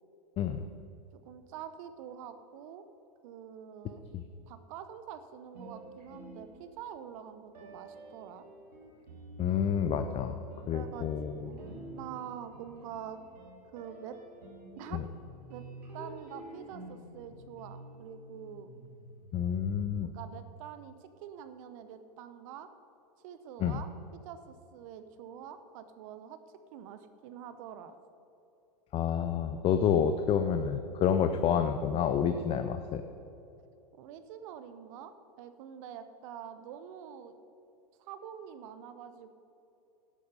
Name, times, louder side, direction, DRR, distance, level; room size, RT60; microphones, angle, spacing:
voice 1, 1.1-2.9 3.2-4.0 4.5-8.5 10.7-13.2 13.7-14.2 14.8-15.1 15.5-15.6 15.9-18.7 20.0-22.7 23.2-23.9 24.2-26.4 26.7-27.9 34.0-37.3 38.0-39.3, right 9 dB, 55° right, 10 dB, 0.8 m, -46 dB
sound 1, 5.5-7.0 7.5-19.8, equal, 75° right, 2.8 m, -49 dB
voice 2, 9.4-10.4 10.7-11.6 14.9-15.0 19.3-20.1 23.6-23.8 28.9-33.0, left 8 dB, 30° left, 8 dB, 0.5 m, -29 dB
11.5 x 8.6 x 5.4 m, 2.8 s
hypercardioid pair, 100°, 21 cm